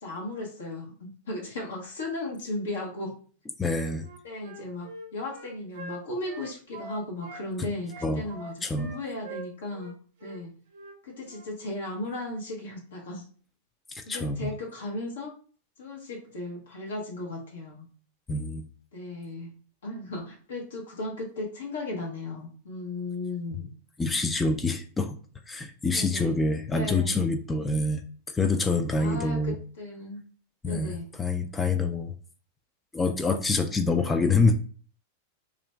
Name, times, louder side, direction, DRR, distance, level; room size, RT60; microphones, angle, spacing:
voice 1, 0.0-3.1 4.2-9.9 10.2-10.5 11.0-13.3 14.1-15.3 15.8-17.9 18.9-19.5 19.8-23.7 25.9-26.4 26.7-27.1 29.0-30.2 30.7-31.0, left 2 dB, 80° left, -2 dB, 0.8 m, -36 dB
voice 2, 3.6-4.1 8.0-8.3 8.6-8.9 13.9-14.5 18.3-18.7 24.0-25.2 25.5-28.0 28.3-29.6 30.6-30.9 31.2-32.1 32.9-34.5, left 3 dB, 15° left, 6 dB, 0.3 m, -26 dB
Wind instrument woodwind instrument, 4.0-7.4 7.9-9.9 10.2-10.4 10.7-11.0 11.3-11.5, right 2 dB, 70° right, 0.6 m, -43 dB
2.4 x 2.1 x 3.2 m, 0.42 s
hypercardioid pair, 100°, 0 cm